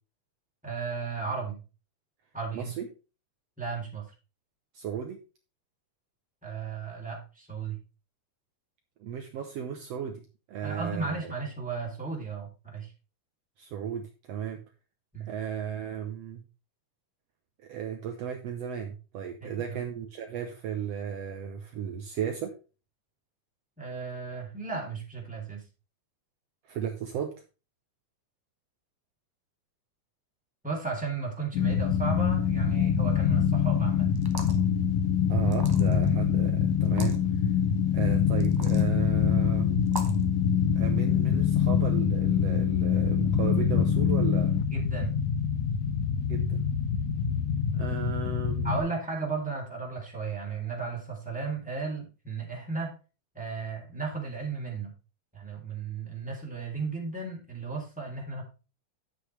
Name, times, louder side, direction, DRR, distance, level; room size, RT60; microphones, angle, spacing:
voice 1, 0.6-1.6 2.3-2.7 3.6-4.0 6.4-7.8 10.6-12.9 15.1-15.3 19.4-19.8 23.8-25.6 30.6-34.1 44.7-45.1 48.6-52.9 53.3-54.9 55.3-58.4, right 4 dB, 5° right, -2 dB, 3.2 m, -35 dB
voice 2, 2.5-2.9 4.7-5.2 9.0-10.2 10.5-11.1 13.6-14.6 15.2-16.4 17.6-22.5 26.7-27.3 35.3-37.2 37.9-39.8 40.8-44.5 46.3-46.6 47.7-48.9, right 8 dB, 65° right, 3 dB, 1.9 m, -35 dB
sound 1, 31.5-48.8, left 8 dB, 90° left, 2.4 m, -25 dB
sound 2, 34.2-34.6 35.5-36.1 36.8-37.2 38.4-38.9 39.9-40.2, right 2 dB, 30° right, 0.4 m, -39 dB
10.0 x 8.3 x 3.3 m, 0.32 s
omnidirectional pair, 3.3 m